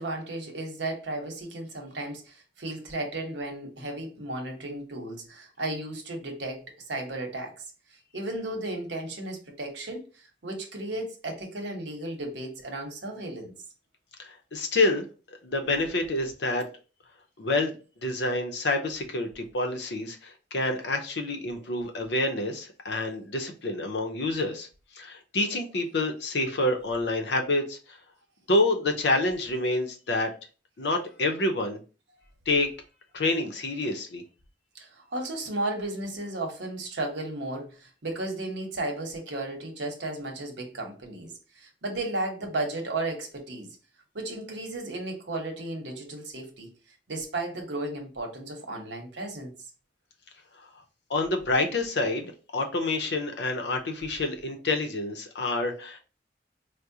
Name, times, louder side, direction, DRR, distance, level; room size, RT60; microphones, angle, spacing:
voice 1, 0.0-7.6 8.1-13.5 34.7-43.7 44.1-46.7 47.1-49.5, right 2 dB, 75° right, 2 dB, 1.0 m, -34 dB
voice 2, 14.2-15.1 15.4-16.6 17.4-17.7 18.0-24.7 25.0-27.8 28.5-30.3 30.8-31.8 32.5-32.7 33.1-34.2 51.1-56.0, left 2 dB, 65° left, 4 dB, 0.6 m, -27 dB
4.7 x 2.1 x 2.7 m, 0.35 s
head